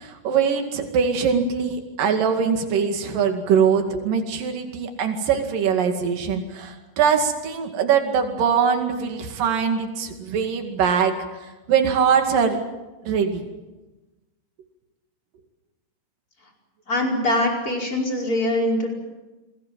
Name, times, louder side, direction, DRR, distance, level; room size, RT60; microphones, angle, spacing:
voice 1, 0.0-11.2 11.4-12.6 13.1-13.5, right 7 dB, 80° right, 4 dB, 3.9 m, -22 dB
voice 2, 16.9-18.9, left 1 dB, 25° left, 0 dB, 5.4 m, -23 dB
28.0 x 21.0 x 7.6 m, 1.1 s
omnidirectional pair, 3.9 m